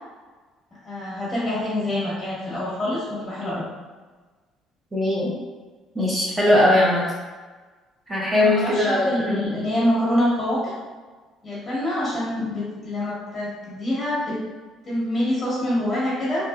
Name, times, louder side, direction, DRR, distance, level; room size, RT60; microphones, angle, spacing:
voice 1, 0.8-3.7 8.3-10.7 11.4-14.4 14.9-16.5, left 1 dB, 20° left, -10 dB, 1.3 m, -26 dB
voice 2, 4.9-5.3 6.0-7.0 8.1-9.6, left 1 dB, 15° right, -5 dB, 0.7 m, -20 dB
2.9 x 2.5 x 2.3 m, 1.3 s
supercardioid pair, 90°, 0 cm